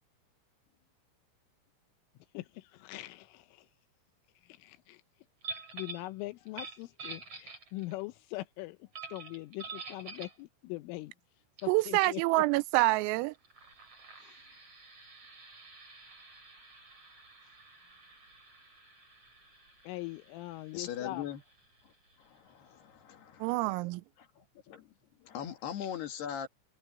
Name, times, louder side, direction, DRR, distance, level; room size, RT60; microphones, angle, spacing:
voice 1, 2.3-3.7 4.4-5.0 5.5-11.1 11.6-12.5 14.2-14.6 19.8-21.3 25.8-25.9, left 19 dB, 80° left, 3.2 m, -42 dB
sound 1, 5.4-6.1 6.5-8.0 8.9-10.4 11.6-11.7 12.0-12.2 13.3-22.6, right 4 dB, 30° right, 8.1 m, -48 dB
voice 2, 11.7-13.3 23.4-24.0, right 21 dB, 90° right, 3.4 m, -27 dB
voice 3, 20.7-21.4 21.8-21.9 22.2-23.7 24.2-24.9 25.2-26.5, left 9 dB, 60° left, 3.6 m, -41 dB
omnidirectional pair, 5.9 m